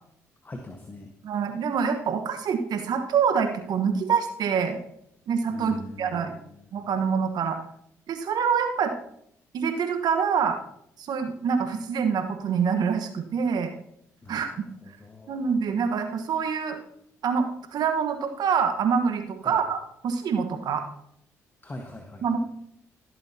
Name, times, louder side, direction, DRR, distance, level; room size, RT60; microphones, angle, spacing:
voice 1, 0.4-1.1 5.5-6.6 14.2-14.5 14.8-15.5 19.4-19.6 21.6-22.2, left 1 dB, 30° left, 2 dB, 1.5 m, -42 dB
voice 2, 1.2-4.8 5.3-6.3 6.7-7.6 8.1-8.9 9.5-10.6 11.0-13.7 14.3-14.7 15.3-16.8 17.2-20.8 22.2-22.4, right 6 dB, 65° right, 6 dB, 1.3 m, -26 dB
16.0 x 7.8 x 2.9 m, 0.71 s
hypercardioid pair, 50°, 7 cm